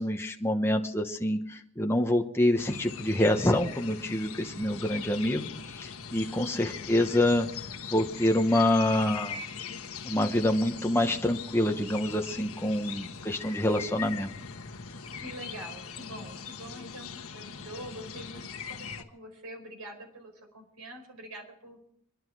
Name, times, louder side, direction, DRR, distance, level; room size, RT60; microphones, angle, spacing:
voice 1, 0.0-7.5 7.9-9.4 10.0-14.3, left 1 dB, 10° left, 3 dB, 1.0 m, -26 dB
sound 1, 2.6-19.0, left 6 dB, 65° left, 1.4 m, -41 dB
voice 2, 6.2-6.7 15.1-21.8, right 1 dB, 80° right, 4 dB, 4.8 m, -45 dB
27.0 x 11.0 x 4.8 m, 0.72 s
head